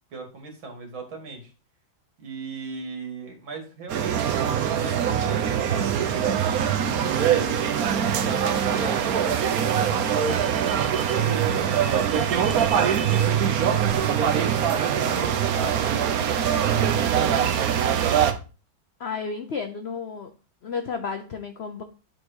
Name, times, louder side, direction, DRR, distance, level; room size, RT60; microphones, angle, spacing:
voice 1, 0.1-1.5 2.2-7.6 8.1-12.5, right 3 dB, 90° right, 2 dB, 2.7 m, -40 dB
sound 1, 3.9-18.3, right 8 dB, 60° right, 1.1 m, -23 dB
voice 2, 19.0-20.3 20.6-21.8, left 5 dB, 90° left, 6 dB, 0.5 m, -32 dB
9.6 x 4.0 x 4.8 m, 0.34 s
omnidirectional pair, 2.1 m